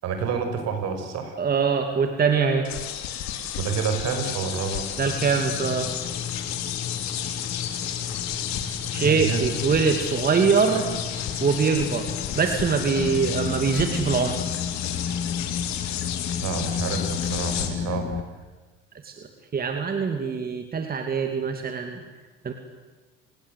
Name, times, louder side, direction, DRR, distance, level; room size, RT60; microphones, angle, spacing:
voice 1, 0.0-1.4 3.6-4.9 9.0-9.4 10.7-10.9 16.4-18.1, right 6 dB, 60° right, 6 dB, 5.8 m, -29 dB
voice 2, 1.4-2.7 5.0-5.9 8.9-10.8 11.4-12.1 12.4-14.4 19.0-19.1 19.5-22.0 22.4-22.5, right 5 dB, 30° right, 5 dB, 2.5 m, -23 dB
sound 1, 2.6-17.7, left 10 dB, 70° left, 3.7 m, -32 dB
sound 2, 5.0-18.2, left 7 dB, 40° left, 1.7 m, -33 dB
30.0 x 20.0 x 8.3 m, 1.3 s
supercardioid pair, 100°, 29 cm